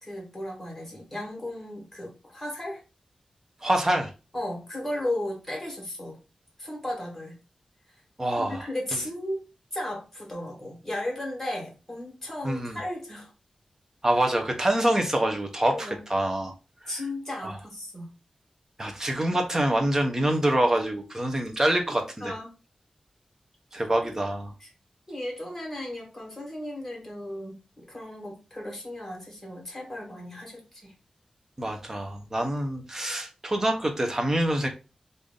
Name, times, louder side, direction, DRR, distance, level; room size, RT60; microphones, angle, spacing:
voice 1, 0.0-2.8 4.3-6.2 6.6-7.3 8.4-9.4 9.7-13.3 15.6-16.0 16.9-18.1 22.2-22.5 24.0-24.1 24.6-24.7 25.1-30.9, left 1 dB, 10° left, -1 dB, 1.9 m, -35 dB
voice 2, 3.6-4.1 8.2-8.6 12.4-12.8 14.0-16.5 17.4-17.6 18.8-22.3 23.7-24.5 31.6-34.7, right 1 dB, 25° right, 4 dB, 0.8 m, -26 dB
3.4 x 2.6 x 3.7 m, 0.31 s
wide cardioid pair, 120°, 2 cm